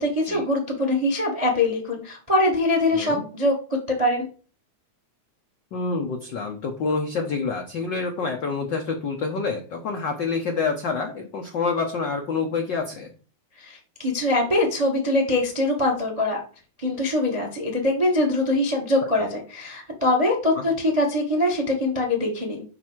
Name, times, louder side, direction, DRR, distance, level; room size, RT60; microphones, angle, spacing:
voice 1, 0.0-3.5 3.9-4.3 13.6-16.4 16.8-22.6, left 1 dB, 30° right, 2 dB, 0.6 m, -23 dB
voice 2, 2.9-3.3 5.7-13.1 19.2-19.3 20.6-20.7, left 4 dB, 80° left, 3 dB, 1.0 m, -27 dB
6.0 x 6.0 x 4.5 m, 0.37 s
omnidirectional pair, 3.4 m